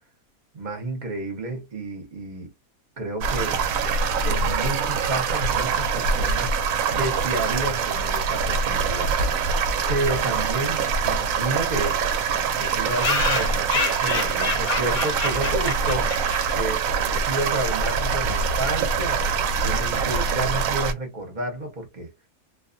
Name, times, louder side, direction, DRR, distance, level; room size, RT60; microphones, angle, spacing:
voice 1, 0.5-2.5 3.0-3.6 4.2-6.6 6.9-9.2 9.9-12.1 12.6-16.1 16.5-22.1, right 2 dB, 40° right, 0.8 m, -31 dB
sound 1, 3.2-20.9, right 5 dB, 75° right, 1.0 m, -24 dB
sound 2, 10.8-10.9 11.1-11.2 11.5-11.6 11.8-11.9 12.5-16.7, left 4 dB, 55° left, 0.7 m, -28 dB
2.4 x 2.3 x 2.4 m
omnidirectional pair, 1.5 m